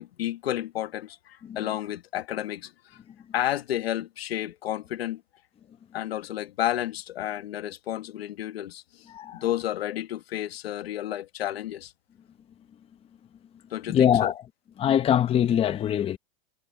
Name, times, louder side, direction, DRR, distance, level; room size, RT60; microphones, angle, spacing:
voice 1, 0.0-3.0 3.3-5.2 5.9-9.1 9.3-11.9 13.7-14.3, left 12 dB, 85° left, 1.6 m, -31 dB
voice 2, 9.1-9.4 13.9-14.4 14.8-16.2, left 9 dB, 20° left, 0.9 m, -23 dB
supercardioid pair, 140°, 30 cm